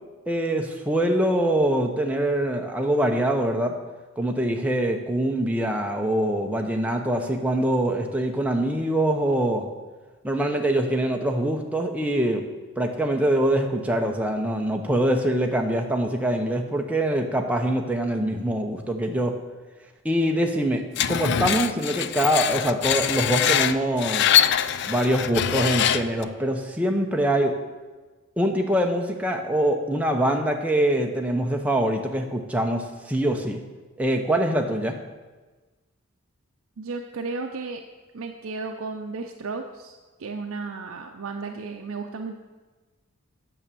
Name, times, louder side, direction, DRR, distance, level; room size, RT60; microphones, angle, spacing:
voice 1, 0.3-3.7 4.2-9.7 10.2-12.5 12.8-19.3 20.0-20.8 21.1-24.3 24.9-27.5 28.4-33.6 34.0-34.9, right 1 dB, 5° right, 2 dB, 0.7 m, -24 dB
Screech, 21.0-26.2, left 9 dB, 50° left, 0.3 m, -23 dB
voice 2, 36.8-37.8 38.1-39.9 40.2-42.3, right 4 dB, 70° right, 3 dB, 0.6 m, -33 dB
8.5 x 6.2 x 6.9 m, 1.3 s
head